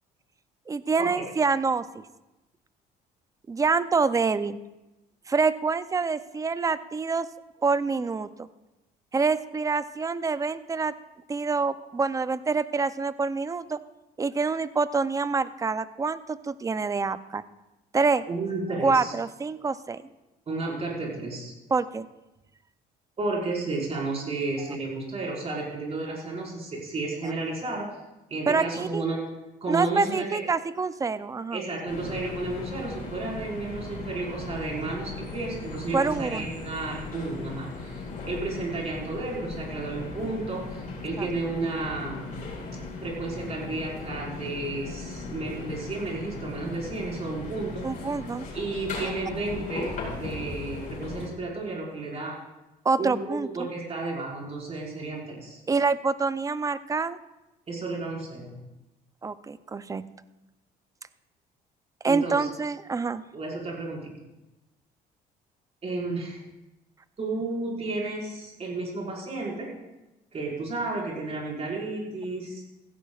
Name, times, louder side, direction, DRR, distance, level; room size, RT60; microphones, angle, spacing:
voice 1, 0.7-2.0 3.5-4.6 5.3-7.3 7.6-8.5 9.1-10.9 11.3-13.8 14.2-17.4 17.9-18.2 18.8-20.0 21.7-22.1 27.2-27.3 28.5-29.0 29.7-31.6 35.9-36.5 41.2-41.3 47.8-48.5 52.8-53.7 55.7-57.2 59.2-60.0 62.0-63.2, right 4 dB, 20° right, 14 dB, 0.5 m, -26 dB
voice 2, 18.3-19.1 20.5-21.5 23.2-27.9 28.3-29.2 29.6-30.4 31.5-42.3 43.0-47.9 48.5-52.4 53.0-55.6 57.7-58.5 62.0-62.5 63.3-64.1 65.8-66.4 67.2-69.7 70.3-72.6, right 3 dB, 40° right, -3 dB, 4.9 m, -32 dB
sound 1, 31.9-51.3, left 3 dB, 50° left, 4.7 m, -38 dB
16.0 x 14.5 x 2.4 m, 1.0 s
cardioid pair, 110°, 17 cm